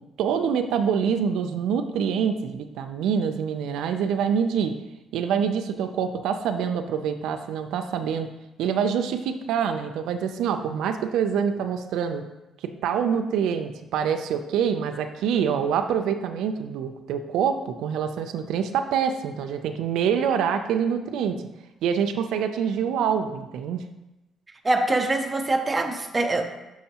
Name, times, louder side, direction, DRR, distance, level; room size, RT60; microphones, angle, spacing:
voice 1, 0.2-4.8 5.1-8.3 8.6-12.3 12.6-21.4 21.8-23.9, right 7 dB, 85° right, 7 dB, 0.4 m, -25 dB
voice 2, 24.6-26.6, right 2 dB, 20° right, 4 dB, 0.5 m, -24 dB
6.0 x 5.5 x 2.8 m, 1.0 s
cardioid pair, 125°, 0 cm